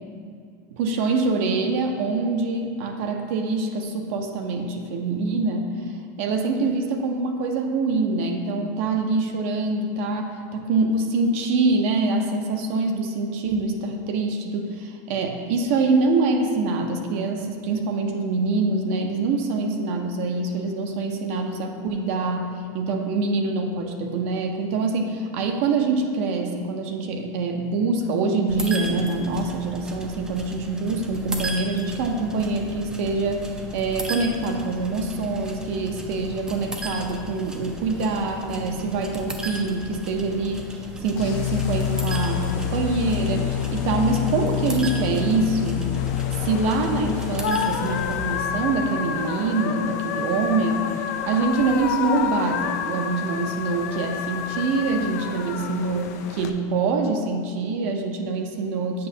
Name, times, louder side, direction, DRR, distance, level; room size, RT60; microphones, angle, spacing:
voice 1, 0.8-5.7 6.2-45.9 46.4-50.9 51.3-59.1, right 3 dB, 55° right, 3 dB, 0.6 m, -25 dB
sound 1, 28.5-48.2, right 1 dB, 10° right, 0.4 m, -36 dB
sound 2, 41.2-48.8, left 10 dB, 45° left, 0.7 m, -27 dB
sound 3, 46.0-56.5, left 8 dB, 80° left, 0.4 m, -30 dB
7.7 x 5.9 x 2.7 m, 2.3 s
supercardioid pair, 170°, 9 cm